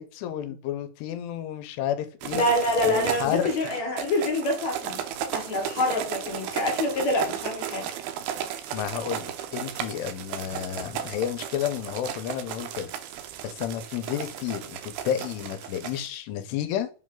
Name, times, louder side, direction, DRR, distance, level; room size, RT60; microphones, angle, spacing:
voice 1, 0.0-2.4 2.8-3.5 8.7-12.9 13.4-16.9, left 10 dB, 85° left, 2.8 m, -31 dB
sound 1, 2.2-16.1, right 10 dB, 80° right, 2.5 m, -35 dB
voice 2, 2.3-5.0 5.3-7.9, left 1 dB, 60° left, 2.0 m, -26 dB
7.8 x 3.2 x 3.7 m
omnidirectional pair, 4.8 m